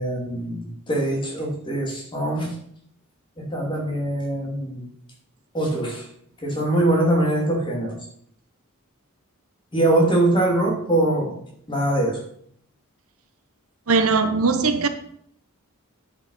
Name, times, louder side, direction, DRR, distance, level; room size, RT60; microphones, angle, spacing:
voice 1, 0.0-2.6 3.4-4.9 5.5-6.1 6.4-8.1 9.7-11.4 11.7-12.3, right 1 dB, 20° left, -1 dB, 2.8 m, -23 dB
voice 2, 13.9-14.9, right 4 dB, 70° right, 9 dB, 0.9 m, -19 dB
10.0 x 5.7 x 5.7 m, 0.66 s
head